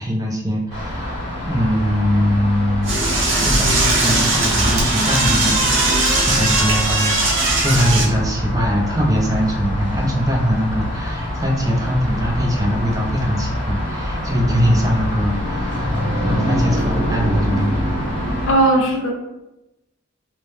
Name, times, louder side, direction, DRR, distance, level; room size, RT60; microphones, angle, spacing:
voice 1, 0.0-18.0, equal, 20° right, -1 dB, 0.4 m, -21 dB
sound 1, 0.7-18.5, equal, 40° right, 1.2 m, -25 dB
Door / Toilet flush, 2.8-8.1, right 2 dB, 85° right, 0.7 m, -19 dB
voice 2, 18.5-19.1, right 2 dB, 85° left, 1 dB, 0.6 m, -16 dB
2.7 x 2.1 x 3.1 m, 0.96 s
head